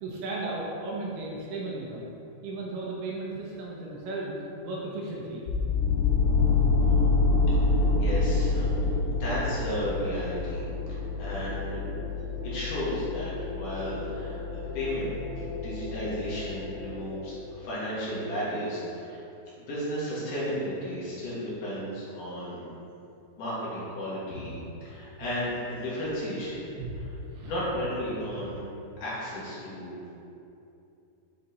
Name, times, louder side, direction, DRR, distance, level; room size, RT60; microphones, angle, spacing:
voice 1, 0.0-2.1 2.4-5.5 6.5-7.1 26.8-27.5 28.4-28.5, right 2 dB, 75° right, -4 dB, 2.6 m, -36 dB
sound 1, 5.5-17.4, left 3 dB, 75° left, 2.3 m, -27 dB
voice 2, 7.5-8.7 9.1-10.6 11.2-11.8 12.4-19.2 19.6-22.7 23.4-26.7 27.0-27.1 27.5-28.6 29.0-30.1, equal, 60° left, -9 dB, 2.6 m, -34 dB
7.8 x 4.2 x 4.0 m, 2.7 s
omnidirectional pair, 5.1 m